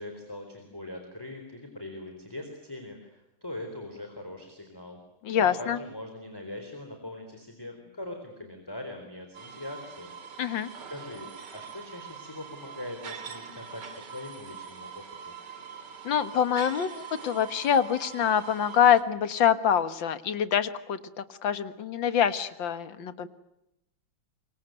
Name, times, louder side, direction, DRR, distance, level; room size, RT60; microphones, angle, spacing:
voice 1, 0.0-5.0 5.3-10.4 10.9-13.8 14.1-15.3, left 1 dB, 10° left, 4 dB, 4.0 m, -41 dB
voice 2, 5.2-5.8 10.4-10.7 16.0-23.3, left 8 dB, 65° left, 12 dB, 2.1 m, -25 dB
sound 1, 9.3-19.0, right 7 dB, 55° right, 2.8 m, -43 dB
26.5 x 24.0 x 9.3 m, 0.83 s
omnidirectional pair, 2.3 m